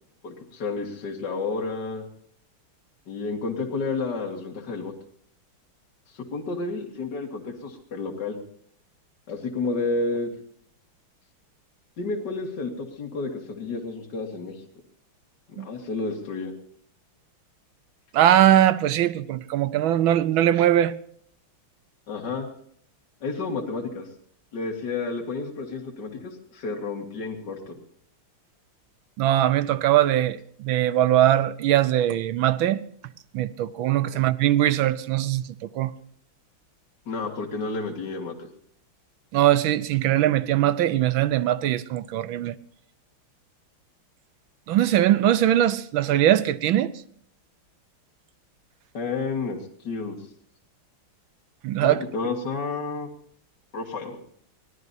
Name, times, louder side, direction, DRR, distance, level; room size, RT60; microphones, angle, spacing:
voice 1, 0.2-2.1 3.1-4.9 6.1-8.4 9.3-10.3 12.0-14.6 15.5-16.5 22.1-22.5 23.2-24.1 24.5-27.8 34.0-34.2 37.1-38.5 48.9-49.6 49.8-50.2 51.8-53.1 53.7-54.2, left 3 dB, 55° left, 2.5 m, -31 dB
voice 2, 18.1-20.9 29.2-32.8 33.3-35.9 39.3-42.5 44.7-46.9 51.6-52.0, right 12 dB, 75° right, 1.5 m, -21 dB
24.0 x 18.0 x 2.8 m
omnidirectional pair, 2.3 m